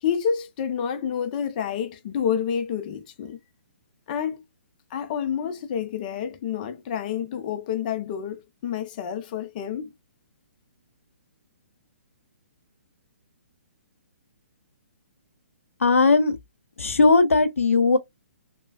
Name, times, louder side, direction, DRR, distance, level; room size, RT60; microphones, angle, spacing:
voice 1, 0.0-3.4 4.1-4.4 4.9-9.9, left 8 dB, 40° left, 0.6 m, -29 dB
voice 2, 15.8-16.4 16.8-18.0, left 3 dB, 85° left, 0.8 m, -18 dB
3.1 x 2.3 x 2.3 m
figure-of-eight pair, 130°, 7 cm